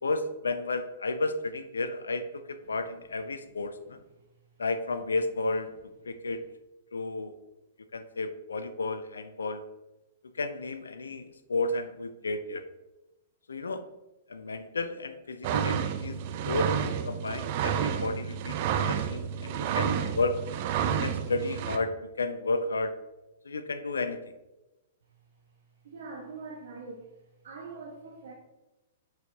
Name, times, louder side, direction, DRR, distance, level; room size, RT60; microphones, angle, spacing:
voice 1, 0.0-4.0 4.6-5.7 6.0-6.4 6.9-7.4 7.9-9.6 10.3-12.6 13.5-13.8 14.3-16.2 16.4-20.4 20.9-23.0 23.4-24.3, left 3 dB, 85° left, 10 dB, 0.5 m, -32 dB
sound 1, 15.4-21.8, right 8 dB, 50° right, 0.6 m, -30 dB
voice 2, 25.9-27.0 27.4-28.3, right 3 dB, 70° right, -3 dB, 1.3 m, -42 dB
7.9 x 4.8 x 2.8 m, 1.0 s
hypercardioid pair, 115°, 0 cm